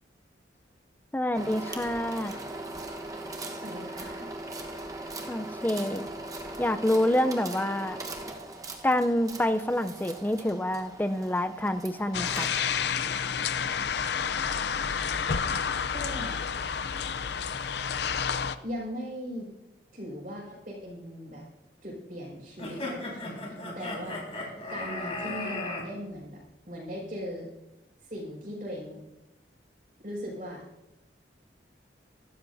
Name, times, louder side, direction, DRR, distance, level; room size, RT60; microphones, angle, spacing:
voice 1, 1.1-2.3 5.3-6.1 6.6-8.0 8.8-12.5, left 1 dB, 10° left, 9 dB, 0.5 m, -27 dB
sound 1, 1.3-13.0, right 2 dB, 20° right, 1.2 m, -40 dB
voice 2, 3.5-4.3 15.9-16.4 18.6-19.5 19.9-21.4 21.8-26.4 26.7-27.5 28.0-29.0 30.0-30.6, equal, 45° right, -7 dB, 5.2 m, -39 dB
sound 2, 12.1-18.6, left 6 dB, 70° left, 0.6 m, -30 dB
sound 3, 22.6-25.8, left 2 dB, 35° left, 4.4 m, -35 dB
24.0 x 13.0 x 2.7 m, 0.92 s
head